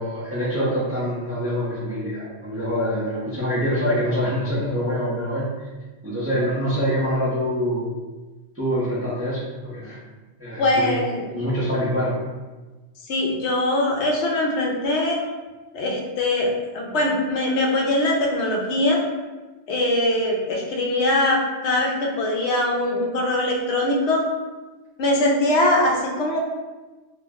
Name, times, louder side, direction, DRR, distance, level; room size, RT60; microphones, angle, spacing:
voice 1, 0.0-5.7 6.0-7.9 8.6-10.0 10.4-10.9 11.3-12.1, equal, 20° right, -8 dB, 0.4 m, -25 dB
voice 2, 10.6-11.3 13.1-15.2 15.7-19.0 19.7-24.2 25.0-26.4, left 1 dB, 70° left, -1 dB, 0.8 m, -22 dB
2.5 x 2.1 x 3.4 m, 1.2 s
omnidirectional pair, 1.2 m